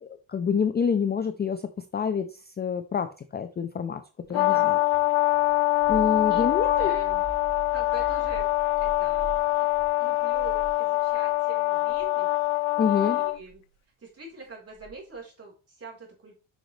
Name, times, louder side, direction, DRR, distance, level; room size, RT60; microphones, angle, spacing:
voice 1, 0.0-1.6 1.9-4.0 4.3-4.8 5.9-6.9 12.8-13.2, left 6 dB, 20° left, 10 dB, 0.4 m, -27 dB
Brass instrument, 4.3-13.4, left 21 dB, 80° left, 0.7 m, -24 dB
voice 2, 4.3-4.9 6.3-6.4 6.8-7.2 7.7-8.5 8.8-9.7 10.0-12.3 12.8-13.6 14.0-16.4, right 3 dB, 30° right, -2 dB, 3.8 m, -43 dB
sound 1, 5.5-11.3 11.8-12.1 13.3-13.6 14.8-15.2, right 5 dB, 80° right, 2.3 m, -43 dB
8.0 x 6.0 x 3.2 m, 0.35 s
cardioid pair, 135°, 49 cm